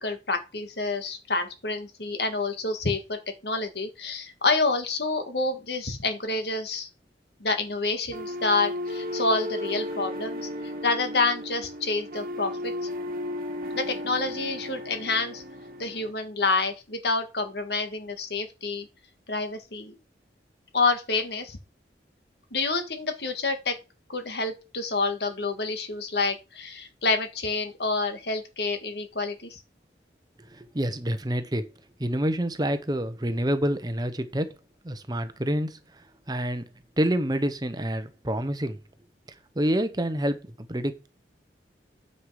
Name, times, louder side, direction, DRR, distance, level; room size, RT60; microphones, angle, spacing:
voice 1, 0.0-6.9 7.4-10.5 10.8-12.9 13.7-15.4 15.8-18.9 19.3-19.9 20.7-21.6 22.5-23.8 24.1-29.6, left 3 dB, 70° left, 1.8 m, -28 dB
sound 1, 8.1-16.1, left 1 dB, 50° right, 1.4 m, -34 dB
voice 2, 30.5-31.7 32.0-34.5 34.8-36.7 37.0-38.8 39.6-41.1, equal, 25° right, 0.9 m, -28 dB
9.4 x 5.4 x 4.8 m
head